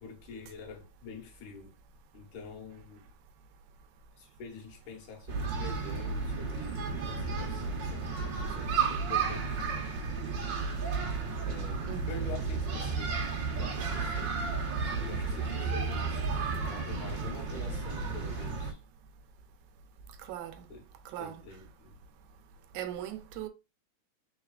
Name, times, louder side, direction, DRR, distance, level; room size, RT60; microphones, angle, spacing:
voice 1, 0.0-1.7 2.1-3.1 4.2-9.7 11.4-13.2 13.5-14.3 14.9-18.8 20.7-20.9 21.2-22.0, left 4 dB, 85° left, 2.8 m, -47 dB
sound 1, 5.3-18.7, right 4 dB, 55° right, 1.3 m, -33 dB
voice 2, 11.9-12.3 20.2-20.7 21.1-21.4 22.7-23.5, right 11 dB, 80° right, 2.0 m, -39 dB
4.7 x 4.2 x 2.3 m
omnidirectional pair, 3.4 m